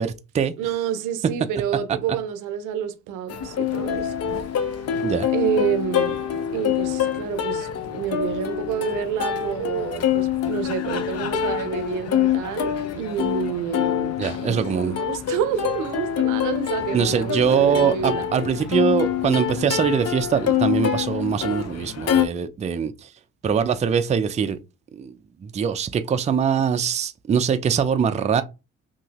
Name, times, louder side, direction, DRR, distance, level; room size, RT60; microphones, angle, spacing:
voice 1, 0.0-0.5 5.0-5.3 14.2-14.9 16.9-23.1 23.4-24.6 24.9-25.1 25.4-28.4, right 7 dB, 25° right, 0.3 m, -22 dB
voice 2, 0.6-4.1 5.3-6.2 6.5-18.3, right 8 dB, 90° right, 0.5 m, -28 dB
Plucked string instrument, 3.3-22.2, left 9 dB, 55° left, 0.6 m, -25 dB
2.8 x 2.6 x 2.8 m
cardioid pair, 90°, 30 cm